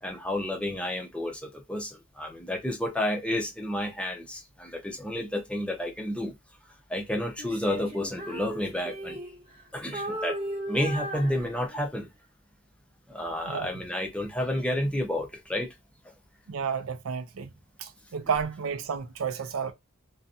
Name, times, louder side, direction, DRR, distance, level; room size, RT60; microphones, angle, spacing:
voice 1, 0.0-6.3 6.9-9.2 9.7-10.4 10.7-12.1 13.1-15.7, left 1 dB, 5° left, 0.5 m, -30 dB
Female singing, 7.4-9.6 9.9-12.0, right 1 dB, 25° right, 0.9 m, -36 dB
voice 2, 16.5-17.5 17.8-19.7, right 6 dB, 80° right, 0.5 m, -31 dB
2.5 x 2.2 x 2.5 m
head